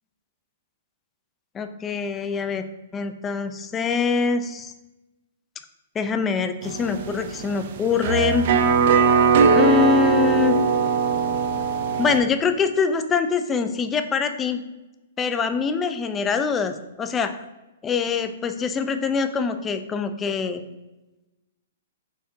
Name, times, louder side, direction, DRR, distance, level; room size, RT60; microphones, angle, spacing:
voice 1, 1.5-2.6 2.9-4.7 6.0-8.5 9.5-10.6 12.0-14.6 15.2-17.3 17.8-20.6, left 5 dB, 20° left, 8 dB, 0.3 m, -24 dB
sound 1, 6.6-12.2, right 5 dB, 55° right, 0.4 m, -20 dB
4.6 x 3.4 x 2.6 m, 1.0 s
hypercardioid pair, 125°, 0 cm